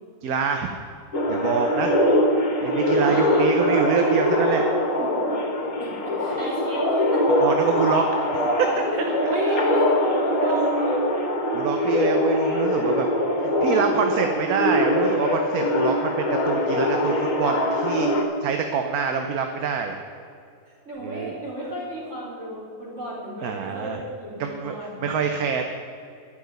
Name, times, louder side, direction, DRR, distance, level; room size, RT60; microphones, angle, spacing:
voice 1, 0.2-0.7 1.3-1.9 2.6-4.6 7.4-9.1 9.5-9.6 11.5-13.1 13.4-18.1 18.4-20.0 21.0-21.3 23.4-24.0 24.4-25.7, right 6 dB, 65° right, 5 dB, 1.2 m, -26 dB
sound 1, 1.1-18.2, left 1 dB, 50° left, 1.9 m, -23 dB
voice 2, 2.9-3.6 5.0-5.2 5.8-7.7 8.9-11.5 20.9-25.1, right 1 dB, 45° right, -6 dB, 4.1 m, -31 dB
11.5 x 6.0 x 9.1 m, 2.4 s
omnidirectional pair, 1.8 m